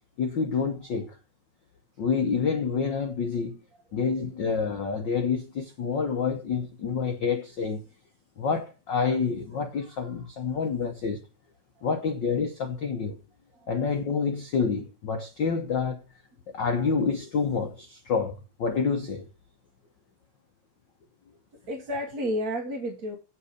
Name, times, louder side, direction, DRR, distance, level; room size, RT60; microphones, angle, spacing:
voice 1, 0.2-1.2 2.0-3.6 3.9-7.8 8.4-11.2 11.8-13.2 13.7-16.0 16.5-19.3, left 5 dB, 85° left, 1.0 m, -28 dB
voice 2, 9.8-10.6 13.5-13.7 21.7-23.2, equal, 40° right, 1.5 m, -33 dB
7.5 x 7.3 x 5.1 m
omnidirectional pair, 3.5 m